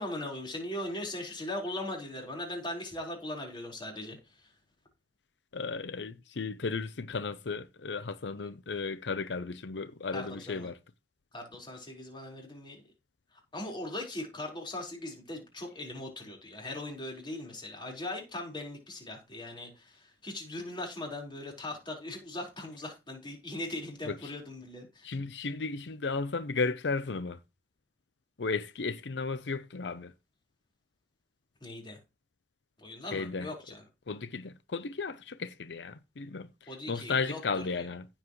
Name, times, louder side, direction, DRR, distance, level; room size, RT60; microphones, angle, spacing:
voice 1, 0.0-4.2 10.1-10.7 11.3-12.8 13.5-25.1 31.6-32.0 32.8-33.8 36.7-37.4 37.8-37.9, left 1 dB, 25° left, 4.5 m, -39 dB
voice 2, 5.5-10.8 24.0-24.3 25.0-27.4 28.4-30.1 33.0-33.5 34.1-38.1, left 4 dB, 85° left, 0.7 m, -34 dB
15.5 x 7.3 x 3.1 m
head